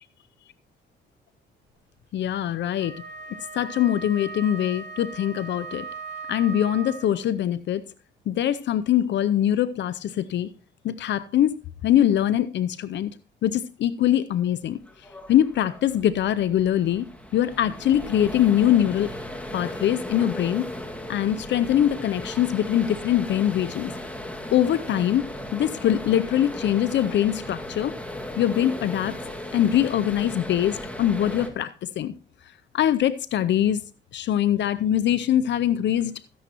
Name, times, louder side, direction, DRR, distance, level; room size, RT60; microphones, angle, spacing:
voice 1, 2.1-2.9 3.5-5.8 6.3-7.8 8.3-10.5 10.8-11.6 11.8-13.1 13.4-14.8 15.3-17.1 17.3-19.1 19.5-20.7 21.1-23.9 24.5-25.2 25.5-28.0 28.4-29.2 29.5-32.1 32.7-33.8 34.1-36.1, left 11 dB, 65° left, 0.6 m, -23 dB
Wind instrument woodwind instrument, 2.8-7.4, right 4 dB, 60° right, 2.6 m, -38 dB
sound 1, 14.8-31.5, left 1 dB, 5° left, 2.0 m, -36 dB
14.0 x 10.0 x 2.9 m
cardioid pair, 90°, 20 cm